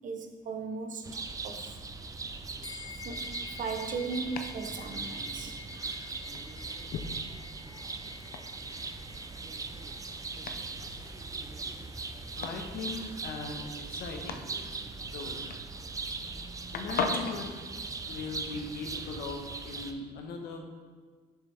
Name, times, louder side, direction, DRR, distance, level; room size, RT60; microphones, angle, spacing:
voice 1, 0.0-1.8 3.0-5.6 17.9-18.1, right 4 dB, 50° right, 0.8 m, -38 dB
sound 1, 1.0-19.9, right 3 dB, 20° right, 0.5 m, -40 dB
Domestic sounds home sounds, 1.9-17.5, left 5 dB, 60° left, 0.6 m, -43 dB
sound 2, 2.6-12.4, left 6 dB, 25° left, 0.9 m, -50 dB
voice 2, 12.3-14.5 15.0-15.4 16.7-17.5 18.1-20.6, left 3 dB, 75° left, 1.2 m, -39 dB
7.2 x 6.4 x 3.5 m
cardioid pair, 110°, 17 cm